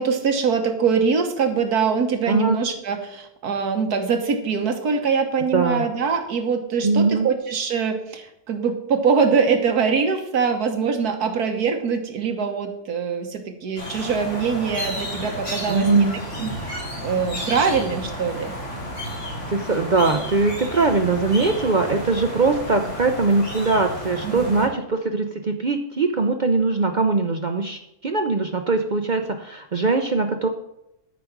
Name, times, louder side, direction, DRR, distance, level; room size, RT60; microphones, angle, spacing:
voice 1, 0.0-16.1 16.4-18.5 24.2-24.7, right 5 dB, 90° right, 5 dB, 1.8 m, -23 dB
voice 2, 2.3-2.6 5.5-5.8 6.8-7.3 15.7-16.2 19.5-30.5, right 3 dB, 50° right, 6 dB, 0.5 m, -21 dB
sound 1, 13.8-24.7, equal, 70° left, 4.9 m, -32 dB
12.5 x 5.2 x 5.9 m, 0.84 s
omnidirectional pair, 1.6 m